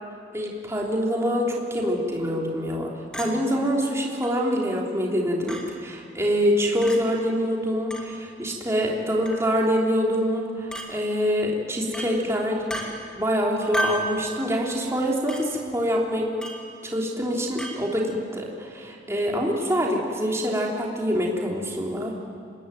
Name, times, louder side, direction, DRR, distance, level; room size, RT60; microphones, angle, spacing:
voice 1, 0.3-12.6 13.2-16.3 16.8-22.1, equal, 15° right, -2 dB, 3.4 m, -25 dB
Chink clink, 3.1-3.3 4.2-4.3 5.5-5.6 6.8-7.0 7.9-8.1 9.3-9.5 10.7-10.9 11.9-12.1 12.7-12.9 13.7-14.1 15.3-15.4 16.4-16.6 17.6-17.8, equal, 5° left, 2.8 m, -30 dB
25.5 x 20.0 x 9.1 m, 2.3 s
head